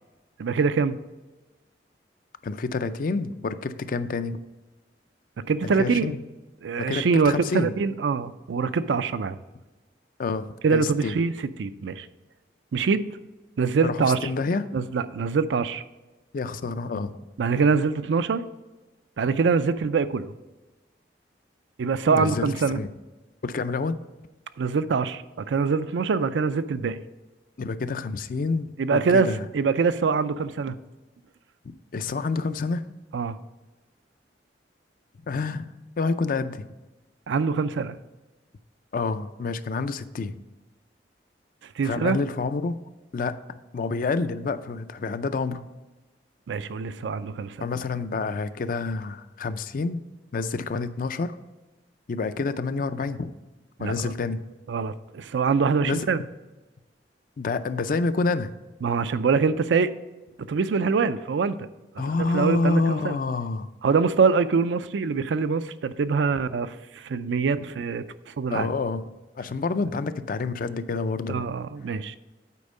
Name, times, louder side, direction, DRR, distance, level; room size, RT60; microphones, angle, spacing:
voice 1, 0.4-1.0 5.5-6.1 6.6-9.4 10.6-11.3 11.6-12.1 12.7-13.1 13.6-14.3 14.7-15.8 17.4-18.4 19.2-20.3 21.8-22.8 24.6-25.2 25.5-27.0 28.8-29.3 29.5-30.8 33.1-33.4 37.3-38.0 41.8-42.2 46.5-47.7 53.8-54.1 54.7-56.2 58.8-59.9 60.5-61.7 62.3-63.2 63.8-68.0 68.4-68.7 71.3-72.2, right 5 dB, 85° right, 13 dB, 0.4 m, -24 dB
voice 2, 2.4-4.4 5.6-6.2 6.8-7.7 10.2-11.2 13.8-14.7 16.3-17.1 22.1-22.9 23.4-24.0 27.6-29.5 31.9-32.8 35.3-35.7 36.0-36.7 38.9-40.4 41.8-42.8 43.1-43.4 43.7-45.7 47.6-50.0 50.3-51.4 52.1-53.3 53.8-54.4 55.8-56.1 57.4-58.5 62.0-63.7 68.5-69.0 69.4-71.6, left 4 dB, 50° left, 12 dB, 0.4 m, -28 dB
8.4 x 4.4 x 5.3 m, 1.1 s
head